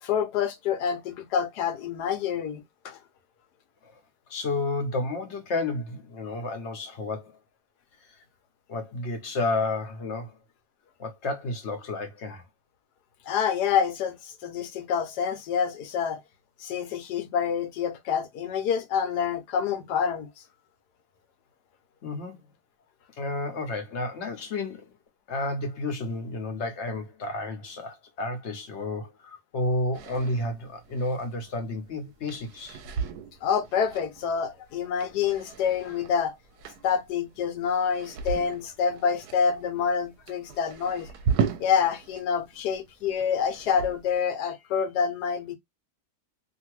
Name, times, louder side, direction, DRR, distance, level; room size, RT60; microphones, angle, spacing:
voice 1, 0.0-3.0 13.3-16.2 16.6-20.3 33.4-36.3 36.8-41.1 41.6-45.6, left 7 dB, 75° left, 1.2 m, -27 dB
voice 2, 4.3-7.4 8.7-10.4 11.0-12.4 22.0-22.4 23.2-24.9 25.3-32.8, left 2 dB, 55° left, 0.9 m, -31 dB
sound 1, 29.9-42.2 42.5-44.1, right 6 dB, 75° right, 1.0 m, -36 dB
2.8 x 2.5 x 2.9 m
omnidirectional pair, 1.8 m